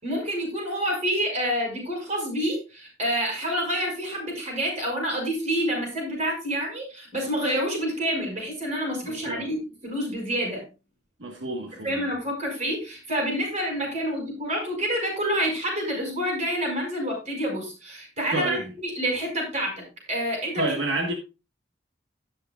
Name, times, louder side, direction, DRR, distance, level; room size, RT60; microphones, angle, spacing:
voice 1, 0.0-9.6 9.8-10.6 11.8-19.8 20.1-20.7, equal, 40° right, 6.1 m, -28 dB
voice 2, 9.0-9.5 11.2-12.0 18.3-18.6 20.6-21.1, right 2 dB, 80° right, 1.6 m, -29 dB
18.0 x 6.3 x 2.5 m
head